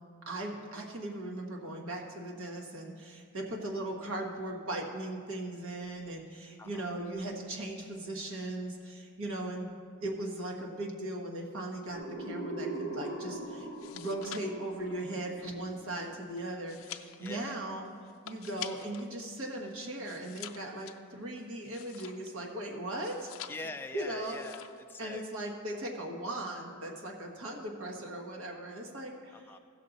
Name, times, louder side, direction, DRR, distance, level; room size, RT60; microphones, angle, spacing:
voice 1, 0.2-9.7 10.0-17.9 18.2-23.3 23.9-24.4 25.0-29.4, right 1 dB, 80° right, 0 dB, 1.4 m, -38 dB
voice 2, 6.6-7.0 17.2-17.7 23.5-25.2 29.3-29.6, left 2 dB, 10° left, 5 dB, 0.3 m, -44 dB
sound 1, 11.9-16.6, right 1 dB, 50° right, 1.7 m, -41 dB
sound 2, 13.6-19.1 19.4-22.5 23.0-23.9 24.2-24.9 25.1-25.5, left 11 dB, 70° left, 0.5 m, -47 dB
16.0 x 6.5 x 4.0 m, 2.2 s
head